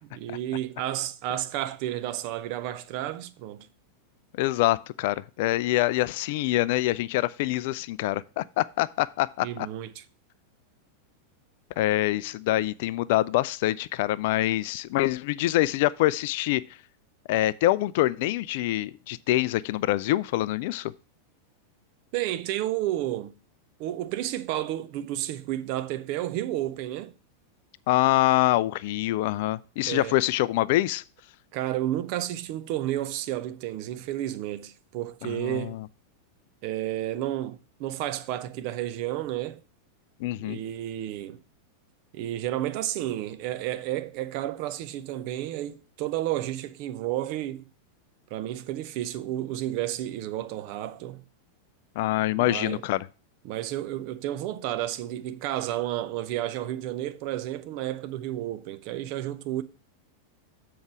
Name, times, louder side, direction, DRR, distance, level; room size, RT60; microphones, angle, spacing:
voice 1, 0.0-3.7 9.4-10.0 22.1-23.3 23.8-27.1 29.9-30.2 31.5-35.8 36.6-39.6 40.4-41.4 42.1-47.6 48.3-51.2 52.3-52.8 53.4-59.6, right 13 dB, 45° right, 0.6 m, -31 dB
voice 2, 4.4-9.7 11.8-16.6 17.3-20.9 27.9-31.0 35.2-35.9 40.2-40.6 52.0-53.1, left 16 dB, 50° left, 0.3 m, -25 dB
7.3 x 4.7 x 6.1 m
figure-of-eight pair, 90°, 0 cm